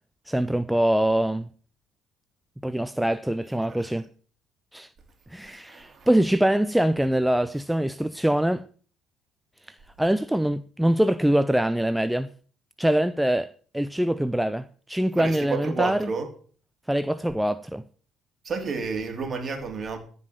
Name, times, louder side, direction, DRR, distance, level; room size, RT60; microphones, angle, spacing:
voice 1, 0.3-1.5 2.6-4.1 4.7-4.9 5.3-8.6 9.7-12.3 12.8-16.1 16.9-17.8, right 1 dB, 5° right, 0.5 m, -24 dB
voice 2, 5.7-6.1 15.2-16.3 18.4-20.0, right 5 dB, 40° right, 3.1 m, -30 dB
14.5 x 5.5 x 7.6 m
hypercardioid pair, 55°, 0 cm